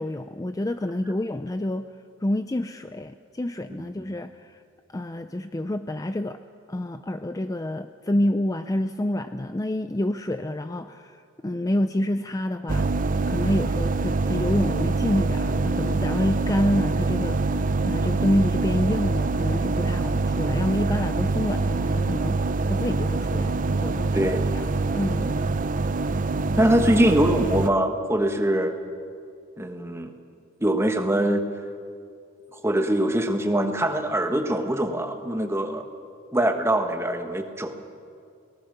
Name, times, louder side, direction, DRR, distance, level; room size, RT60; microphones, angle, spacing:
voice 1, 0.0-1.9 2.2-4.6 4.9-6.4 6.7-13.0 13.3-25.5, left 1 dB, 15° left, 9 dB, 0.4 m, -28 dB
sound 1, 12.7-27.7, right 3 dB, 40° right, 0.5 m, -25 dB
voice 2, 24.1-24.5 26.6-28.7 29.6-30.1 30.6-31.4 32.5-35.8 36.3-37.7, right 1 dB, 10° right, 6 dB, 1.3 m, -23 dB
23.0 x 18.5 x 6.8 m, 2.4 s
head